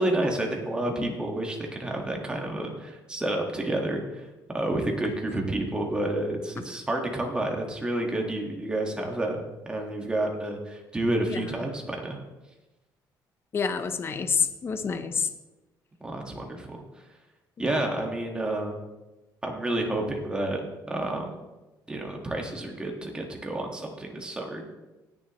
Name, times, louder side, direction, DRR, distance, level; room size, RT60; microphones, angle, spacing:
voice 1, 0.0-4.3 4.5-9.4 9.7-12.2 16.0-16.8 17.6-18.8 19.4-21.3 21.9-24.6, right 1 dB, 10° right, 1 dB, 1.6 m, -29 dB
voice 2, 13.5-15.3, left 6 dB, 30° left, 9 dB, 0.7 m, -28 dB
18.5 x 7.0 x 3.1 m, 1.1 s
cardioid pair, 155°, 8 cm